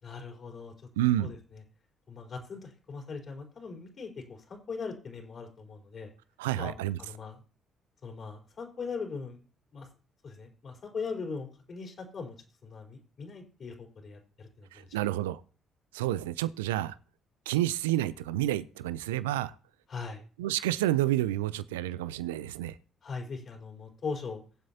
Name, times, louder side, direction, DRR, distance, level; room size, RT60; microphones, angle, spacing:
voice 1, 0.0-0.7 1.2-1.6 2.1-6.1 6.6-7.4 8.0-9.4 9.7-9.9 10.2-12.4 12.6-15.0 19.9-20.2 23.0-24.4, left 5 dB, 50° left, 4.1 m, -40 dB
voice 2, 1.0-1.3 6.4-7.0 14.7-15.4 15.9-16.9 17.5-19.5 20.4-22.7, right 14 dB, 85° right, 0.4 m, -29 dB
22.5 x 7.7 x 2.9 m
hypercardioid pair, 45°, 0 cm